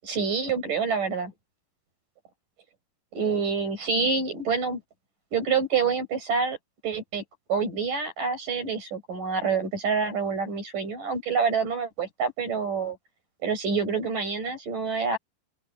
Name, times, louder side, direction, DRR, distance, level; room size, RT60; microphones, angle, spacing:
voice 1, 0.0-1.3 3.1-4.8 5.3-6.6 6.8-7.2 7.5-13.0 13.4-15.2, right 5 dB, 80° right, 9.8 m, -27 dB
open air
omnidirectional pair, 3.7 m